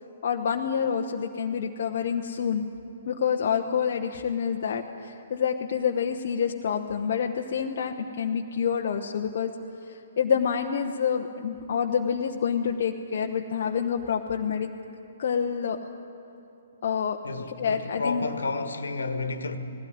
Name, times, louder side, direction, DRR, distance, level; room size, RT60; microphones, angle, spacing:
voice 1, 0.2-2.7 3.1-9.5 9.9-14.7 15.2-15.8 16.8-17.2 17.6-18.2, left 7 dB, 50° left, 1.0 m, -27 dB
voice 2, 17.2-19.6, left 3 dB, 70° left, 1.6 m, -31 dB
19.5 x 16.5 x 9.6 m
figure-of-eight pair, 125°, 0 cm